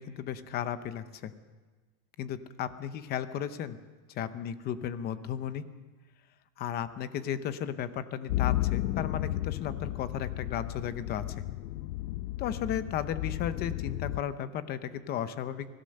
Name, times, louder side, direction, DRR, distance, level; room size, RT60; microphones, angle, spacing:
voice 1, 0.0-1.3 2.2-3.8 4.1-5.6 6.6-11.2 12.4-15.7, left 9 dB, 20° left, 12 dB, 0.7 m, -35 dB
sound 1, 8.3-14.2, left 15 dB, 90° left, 0.8 m, -33 dB
24.0 x 16.5 x 6.5 m, 1.3 s
supercardioid pair, 165°, 47 cm